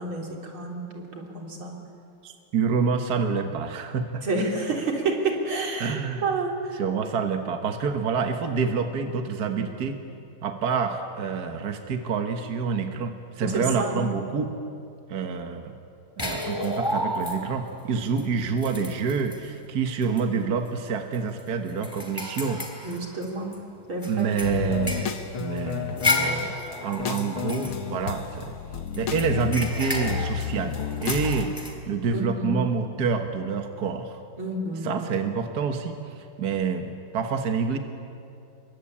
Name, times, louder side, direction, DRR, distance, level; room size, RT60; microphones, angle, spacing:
voice 1, 0.0-1.8 4.2-6.8 13.4-14.0 22.8-23.6 23.9-24.3 32.1-32.6 34.4-35.0, right 2 dB, 80° right, 0 dB, 4.4 m, -29 dB
voice 2, 2.2-4.3 5.8-6.2 6.8-10.0 10.4-14.5 15.1-15.7 16.2-22.6 24.1-25.1 25.4-28.6 29.0-31.5 31.9-34.2 34.8-37.8, right 5 dB, 50° right, 5 dB, 1.8 m, -27 dB
sound 1, 16.2-17.7 18.2-18.3 18.6-19.5 20.0-20.2 20.6-20.7 21.1-23.6 24.0-28.5 28.9-31.7, left 2 dB, 10° left, 3.3 m, -32 dB
sound 2, 24.4-31.4, left 7 dB, 85° left, 2.1 m, -31 dB
28.5 x 23.5 x 8.7 m, 2.5 s
omnidirectional pair, 2.3 m